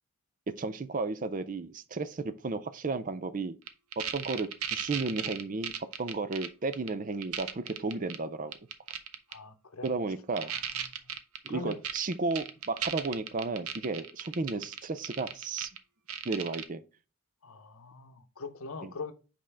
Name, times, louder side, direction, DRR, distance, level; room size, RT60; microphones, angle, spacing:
voice 1, 0.6-3.6 4.0-5.7 6.0-8.5 9.8-10.5 11.4-15.7 16.2-16.8 18.8-18.9, right 3 dB, 35° right, 0.4 m, -33 dB
sound 1, 3.7-6.5 6.7-6.9 7.2-8.2 8.5-9.3 9.9-10.0 10.4-15.8 16.1-16.6, right 9 dB, 80° right, 0.7 m, -35 dB
voice 2, 9.3-9.9 10.4-10.6 10.9-11.1 11.5-11.8 17.4-19.1, left 4 dB, 70° left, 0.8 m, -42 dB
5.4 x 5.2 x 3.4 m
head